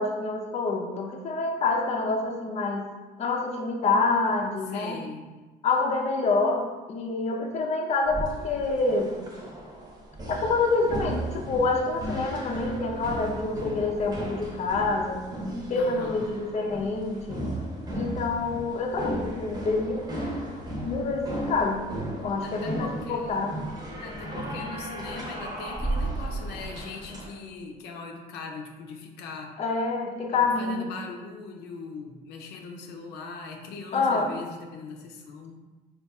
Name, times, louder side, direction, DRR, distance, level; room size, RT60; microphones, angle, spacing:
voice 1, 0.0-2.9 3.2-5.0 5.6-9.2 10.3-15.2 15.7-17.5 17.9-20.1 20.8-21.9 22.2-23.7 29.6-30.9 33.9-34.3, left 3 dB, 40° left, 2 dB, 0.5 m, -27 dB
voice 2, 4.7-5.3 15.7-16.3 22.4-23.4 24.0-29.5 30.3-35.6, left 4 dB, 85° left, 2 dB, 0.5 m, -40 dB
sound 1, 8.1-27.3, right 1 dB, 25° right, 0.9 m, -35 dB
4.1 x 2.4 x 3.5 m, 1.2 s
cardioid pair, 110°, 17 cm